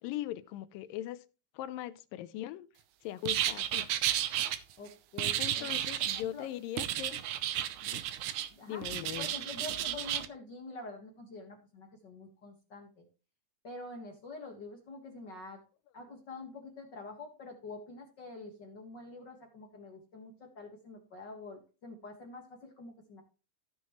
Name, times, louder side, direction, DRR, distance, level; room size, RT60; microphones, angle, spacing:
voice 1, 0.0-1.2 1.5-2.7 3.0-3.9 5.4-7.2 7.8-8.0 8.7-9.3, left 13 dB, 90° left, 2.4 m, -40 dB
sound 1, 3.2-4.6 5.2-6.2 6.8-8.5 8.8-10.3, right 12 dB, 70° right, 2.0 m, -32 dB
voice 2, 4.8-5.7 6.1-6.5 8.5-8.8 9.2-13.0 13.6-15.6 15.9-23.2, left 3 dB, 45° left, 1.6 m, -46 dB
15.0 x 6.4 x 3.1 m
omnidirectional pair, 3.9 m